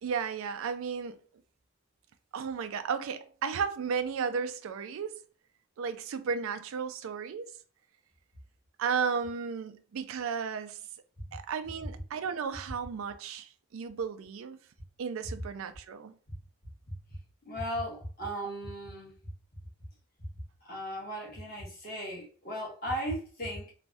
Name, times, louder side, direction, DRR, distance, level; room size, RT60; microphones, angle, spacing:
voice 1, 0.0-1.2 2.3-5.2 5.8-7.5 8.8-10.8 11.3-14.6 15.0-16.1, right 6 dB, 75° right, 0.3 m, -34 dB
voice 2, 17.5-19.1 20.7-23.7, equal, 45° left, 1.2 m, -36 dB
3.3 x 2.2 x 2.5 m
head